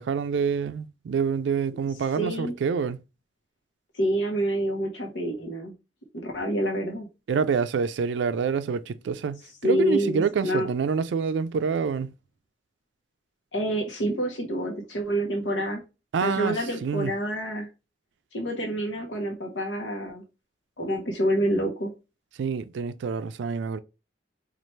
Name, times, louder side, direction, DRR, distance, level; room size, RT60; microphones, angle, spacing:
voice 1, 0.0-3.0 7.3-12.1 16.1-16.6 16.8-17.1 22.4-23.8, right 6 dB, 80° right, 0.3 m, -27 dB
voice 2, 2.2-2.5 3.9-5.7 6.1-7.1 9.6-10.7 13.5-15.8 16.2-17.7 18.3-20.2 20.8-21.9, right 1 dB, 85° left, 0.9 m, -27 dB
4.2 x 2.4 x 3.1 m
head